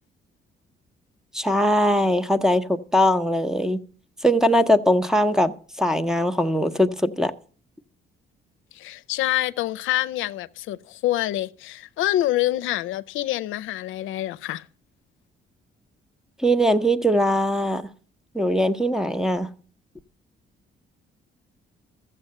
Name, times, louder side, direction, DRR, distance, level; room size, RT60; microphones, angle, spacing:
voice 1, 1.3-3.8 4.2-7.3 16.4-17.8 18.3-19.5, equal, 5° right, 0.8 m, -21 dB
voice 2, 8.7-14.6, left 15 dB, 85° left, 0.5 m, -26 dB
13.5 x 7.7 x 6.6 m
cardioid pair, 90°, 20 cm